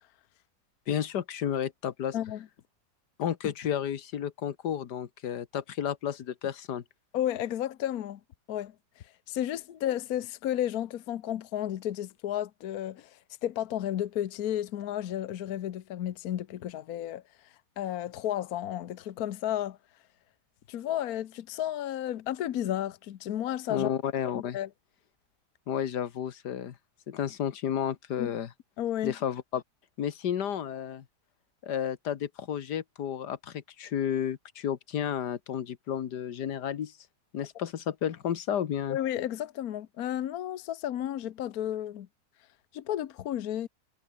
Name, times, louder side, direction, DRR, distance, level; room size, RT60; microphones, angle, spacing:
voice 1, 0.9-2.2 3.2-6.8 23.7-24.6 25.7-26.7 27.1-28.5 29.0-29.6 30.0-31.0 31.6-36.9 37.3-39.0, left 9 dB, 90° left, 1.8 m, -32 dB
voice 2, 2.1-2.5 7.1-8.2 8.5-8.7 9.3-17.2 17.8-19.8 20.7-23.9 24.3-24.7 28.2-28.3 28.8-29.1 38.9-42.1 42.7-43.7, left 11 dB, 65° left, 1.3 m, -32 dB
omnidirectional pair, 1.7 m